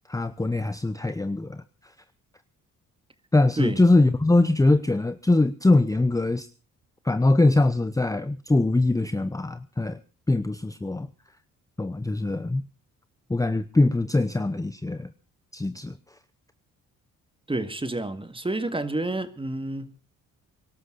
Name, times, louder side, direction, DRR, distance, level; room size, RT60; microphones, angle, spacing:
voice 1, 0.1-1.6 3.3-6.5 7.0-10.0 10.3-11.1 11.8-12.6 13.3-15.1 15.5-15.9, left 2 dB, 10° left, 0.8 m, -22 dB
voice 2, 17.5-19.9, right 2 dB, 15° right, 2.0 m, -29 dB
24.0 x 12.5 x 4.0 m
cardioid pair, 75°, 33 cm